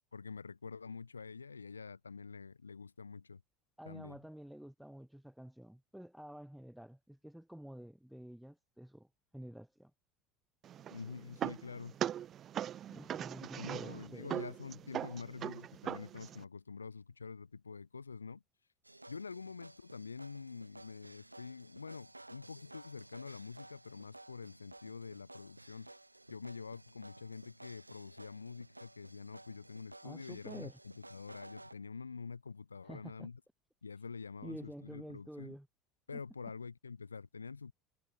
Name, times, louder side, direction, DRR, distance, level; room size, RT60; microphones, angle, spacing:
voice 1, 0.1-3.4 3.8-4.2 10.9-11.9 13.5-18.4 19.1-25.9 26.3-33.4 33.8-35.5 36.1-37.7, left 5 dB, 80° left, 0.7 m, -47 dB
voice 2, 3.8-9.1 9.3-9.9 12.9-14.3 30.0-30.8 32.8-33.3 34.4-35.7 36.1-36.2, equal, ahead, 5.5 m, -49 dB
sound 1, 10.6-16.4, right 10 dB, 40° right, 1.0 m, -41 dB
sound 2, 18.8-31.7, right 2 dB, 90° right, 1.7 m, -55 dB
figure-of-eight pair, 70°, 0 cm